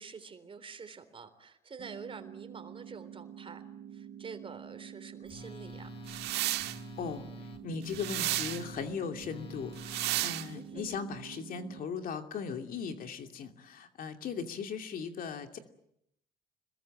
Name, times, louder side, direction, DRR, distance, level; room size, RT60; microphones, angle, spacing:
voice 1, 0.0-3.7 3.9-5.9 10.5-11.0, right 5 dB, 30° right, 9 dB, 3.6 m, -47 dB
sound 1, 1.8-11.8, right 9 dB, 55° right, 2.9 m, -48 dB
Telephone, 5.3-10.2, left 3 dB, 35° left, 1.7 m, -48 dB
sound 2, 6.1-6.8 7.9-8.6 9.8-10.5, right 15 dB, 85° right, 1.6 m, -33 dB
voice 2, 7.0-7.3 7.6-15.6, left 6 dB, 55° left, 6 dB, 2.7 m, -38 dB
26.5 x 22.0 x 9.0 m, 0.76 s
cardioid pair, 110°, 17 cm